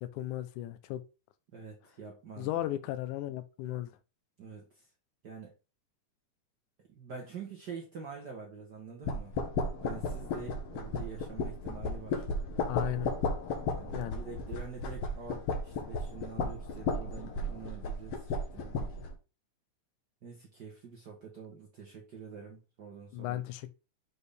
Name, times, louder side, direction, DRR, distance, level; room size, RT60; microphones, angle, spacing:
voice 1, 0.0-1.0 2.4-3.9 12.7-13.1 13.9-14.2 23.1-23.7, left 14 dB, 85° left, 2.0 m, -35 dB
voice 2, 1.5-2.5 4.4-4.9 5.2-5.5 7.0-9.3 9.8-12.2 13.8-18.9 20.2-23.4, right 5 dB, 80° right, 0.9 m, -46 dB
sound 1, 9.0-19.1, left 3 dB, 65° left, 1.8 m, -34 dB
6.6 x 4.3 x 3.3 m
omnidirectional pair, 3.5 m